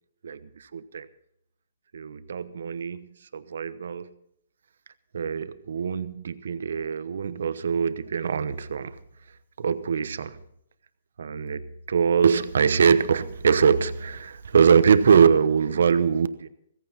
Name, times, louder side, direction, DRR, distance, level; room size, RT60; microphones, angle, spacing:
voice 1, 0.2-1.1 1.9-4.1 5.1-9.0 9.6-10.4 11.2-16.5, right 6 dB, 70° right, 1.0 m, -23 dB
16.5 x 15.0 x 4.3 m
hypercardioid pair, 135°, 0 cm